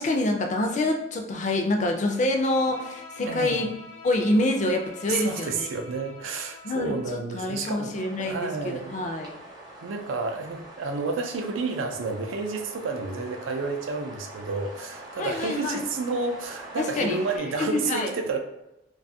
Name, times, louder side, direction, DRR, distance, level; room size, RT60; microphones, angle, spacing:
voice 1, 0.0-3.7 4.0-5.7 6.6-9.3 15.2-15.8 16.8-17.2 17.6-18.1, left 2 dB, 40° left, 3 dB, 0.3 m, -26 dB
Bowed string instrument, 2.1-7.3, left 3 dB, 80° left, 0.6 m, -46 dB
voice 2, 3.2-3.7 5.1-9.0 9.8-18.4, right 4 dB, 85° right, 4 dB, 0.4 m, -30 dB
sound 1, 7.9-17.4, right 1 dB, 20° right, 0.5 m, -44 dB
2.4 x 2.3 x 2.6 m, 0.93 s
head